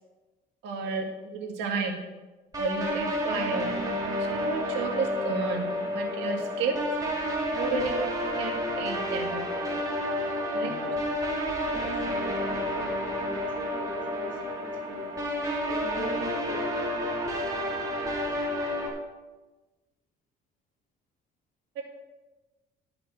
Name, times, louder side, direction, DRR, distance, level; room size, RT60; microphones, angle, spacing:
voice 1, 0.6-1.9 2.6-3.7 4.3-5.6 5.9-6.8 7.6-7.9 8.4-9.6 10.5-10.7 21.8-21.9, right 4 dB, 90° right, 1 dB, 2.2 m, -31 dB
sound 1, 2.5-18.9, equal, 20° right, 2.9 m, -30 dB
voice 2, 10.6-11.1 11.6-13.5 13.8-15.2 15.7-17.1, left 1 dB, 50° left, -1 dB, 2.7 m, -42 dB
12.0 x 6.0 x 5.5 m, 1.2 s
cardioid pair, 110°, 17 cm